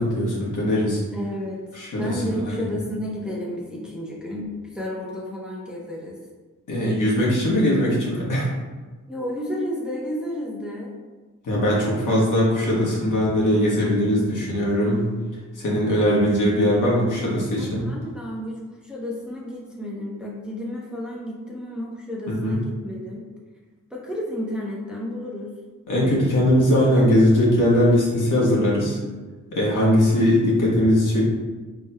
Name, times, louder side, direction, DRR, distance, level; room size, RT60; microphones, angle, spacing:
voice 1, 0.0-1.0 1.7-2.5 6.7-8.5 11.4-15.1 15.5-17.9 22.3-22.6 25.9-29.0 29.5-31.2, equal, 70° left, -6 dB, 1.4 m, -20 dB
voice 2, 1.1-1.6 2.0-6.2 9.1-11.0 17.5-23.3 23.9-25.5, equal, 5° right, -4 dB, 0.8 m, -31 dB
4.1 x 3.5 x 2.2 m, 1.3 s
cardioid pair, 85°, 32 cm